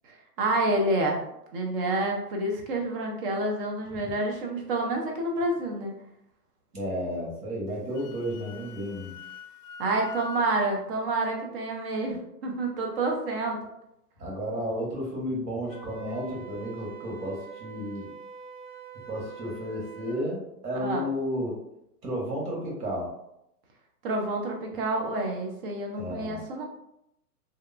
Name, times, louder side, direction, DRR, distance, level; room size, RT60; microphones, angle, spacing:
voice 1, 0.0-1.2 1.5-5.9 9.8-13.6 20.7-21.0 24.0-26.6, right 2 dB, 40° right, 1 dB, 0.6 m, -28 dB
voice 2, 6.7-9.1 14.2-18.1 19.1-21.6 22.0-23.1 26.0-26.4, equal, 85° right, -3 dB, 1.4 m, -32 dB
Wind instrument woodwind instrument, 7.7-10.6, left 5 dB, 55° left, 0.5 m, -44 dB
Wind instrument woodwind instrument 2, 15.7-20.2, right 4 dB, 35° left, 0.8 m, -44 dB
2.8 x 2.1 x 2.4 m, 0.81 s
hypercardioid pair, 125°, 47 cm